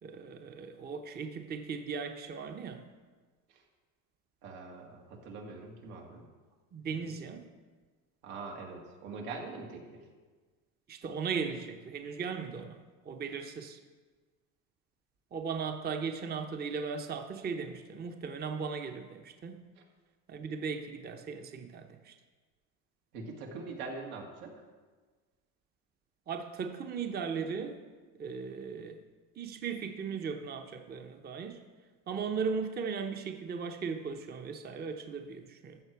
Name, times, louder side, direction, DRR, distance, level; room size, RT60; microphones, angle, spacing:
voice 1, 0.0-2.9 6.7-7.4 10.9-12.8 13.0-13.8 15.3-19.6 20.3-22.1 26.3-27.8 28.2-29.0 29.4-31.6 32.1-35.8, right 5 dB, 25° right, 6 dB, 0.7 m, -37 dB
voice 2, 4.4-6.3 6.9-7.1 8.2-10.1 19.8-19.9 23.1-24.5, right 3 dB, 85° right, 0 dB, 2.2 m, -43 dB
14.5 x 6.5 x 4.6 m, 1.4 s
supercardioid pair, 115°, 43 cm